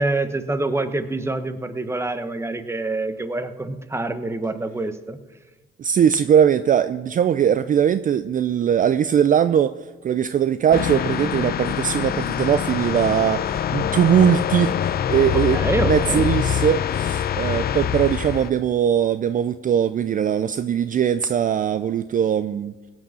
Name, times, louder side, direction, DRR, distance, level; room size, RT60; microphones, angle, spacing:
voice 1, 0.0-5.2 15.3-16.2, right 2 dB, 15° right, 10 dB, 1.0 m, -26 dB
voice 2, 5.8-9.8 10.0-22.7, right 9 dB, 45° right, 13 dB, 0.4 m, -20 dB
sound 1, 10.7-18.5, left 9 dB, 50° left, 0.6 m, -24 dB
17.0 x 6.2 x 7.5 m, 1.2 s
cardioid pair, 90°, 20 cm